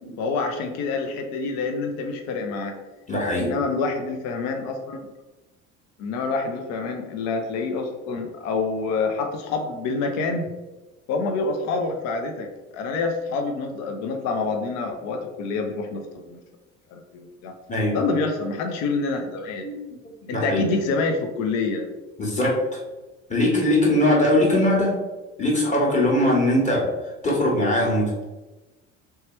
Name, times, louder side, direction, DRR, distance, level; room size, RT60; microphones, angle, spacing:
voice 1, 0.2-2.8 3.4-5.1 6.0-10.5 11.1-16.4 16.9-17.5 17.9-19.7 20.3-21.9, left 3 dB, 45° left, 5 dB, 0.6 m, -27 dB
voice 2, 3.1-3.4 17.7-18.0 19.6-19.8 20.3-20.6 22.2-22.8 23.3-24.9 25.4-26.8 27.2-28.2, left 1 dB, 20° left, -4 dB, 1.3 m, -21 dB
3.3 x 2.7 x 3.1 m, 1.1 s
figure-of-eight pair, 60°, 40 cm